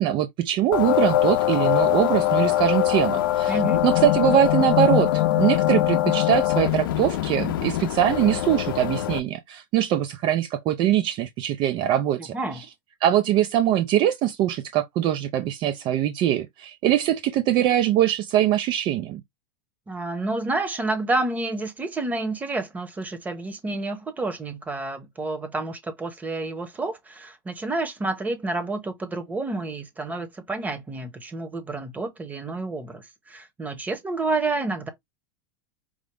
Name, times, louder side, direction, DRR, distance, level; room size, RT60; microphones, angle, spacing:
voice 1, 0.0-12.3 13.0-19.2, right 11 dB, 45° right, 0.4 m, -22 dB
sound 1, 0.7-9.2, left 14 dB, 80° left, 0.5 m, -22 dB
voice 2, 3.5-3.8 12.3-12.7 19.9-34.9, right 2 dB, 15° right, 1.0 m, -29 dB
4.9 x 2.0 x 3.3 m
hypercardioid pair, 115°, 11 cm